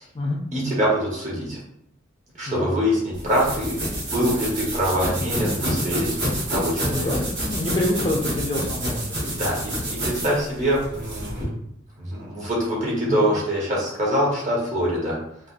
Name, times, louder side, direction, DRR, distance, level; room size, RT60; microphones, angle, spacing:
voice 1, 0.5-1.6 2.4-3.8 4.1-7.1 9.4-11.5 12.0-15.2, equal, 40° right, -5 dB, 1.0 m, -24 dB
sound 1, 3.1-11.4, right 1 dB, 75° right, 1.3 m, -28 dB
voice 2, 5.2-5.8 6.9-9.4 13.1-13.3, left 1 dB, 25° left, -2 dB, 0.4 m, -27 dB
3.6 x 2.0 x 2.5 m, 0.74 s
head